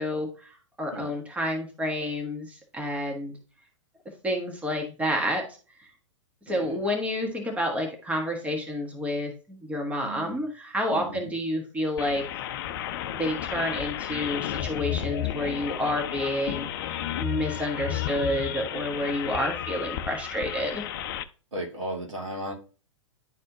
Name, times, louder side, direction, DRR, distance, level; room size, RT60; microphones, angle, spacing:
voice 1, 0.0-3.4 4.2-5.4 6.5-12.2 13.1-20.8, left 1 dB, 10° right, 2 dB, 1.4 m, -29 dB
voice 2, 6.5-6.8 10.0-10.4 10.9-11.3 21.5-22.5, right 1 dB, 75° right, 0 dB, 2.4 m, -36 dB
sound 1, 12.0-21.2, left 11 dB, 45° left, 0.6 m, -32 dB
10.5 x 4.1 x 2.7 m, 0.36 s
figure-of-eight pair, 110°, 16 cm